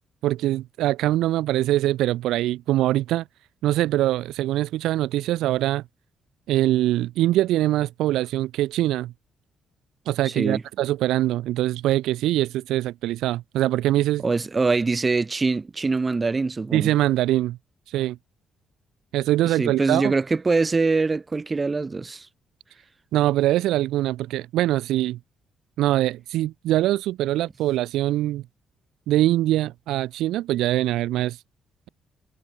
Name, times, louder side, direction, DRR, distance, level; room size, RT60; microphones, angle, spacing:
voice 1, 0.2-3.2 3.6-5.8 6.5-9.1 10.1-14.2 16.7-17.6 17.9-18.2 19.1-20.1 23.1-25.2 25.8-28.4 29.1-31.4, right 14 dB, 90° right, 1.0 m, -23 dB
voice 2, 10.2-10.6 14.2-16.9 19.5-22.3, right 3 dB, 25° right, 1.9 m, -23 dB
cardioid pair, 90°, 0 cm